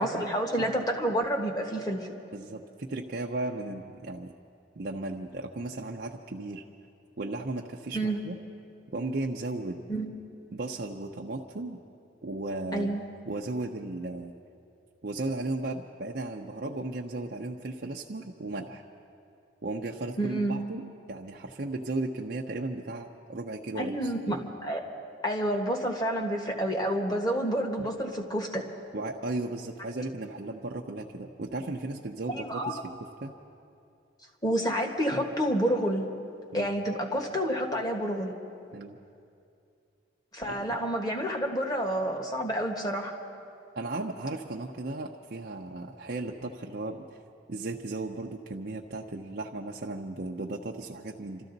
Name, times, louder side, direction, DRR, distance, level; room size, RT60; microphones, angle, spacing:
voice 1, 0.0-2.1 7.9-8.2 9.9-10.1 12.7-13.0 20.2-20.6 23.8-24.8 25.2-28.6 32.3-32.7 34.4-36.1 36.5-38.4 40.3-43.1, right 1 dB, 20° left, 2 dB, 1.3 m, -29 dB
voice 2, 2.3-4.3 4.8-6.6 7.2-8.4 8.9-9.8 10.5-11.8 12.2-13.0 13.3-14.3 15.0-18.8 19.6-20.8 21.1-24.4 27.0-27.2 28.9-32.9 33.2-33.3 36.5-36.7 38.7-39.0 40.5-40.8 43.8-47.2 47.5-51.4, right 2 dB, 50° right, 0 dB, 0.6 m, -35 dB
27.0 x 13.5 x 4.0 m, 2.5 s
head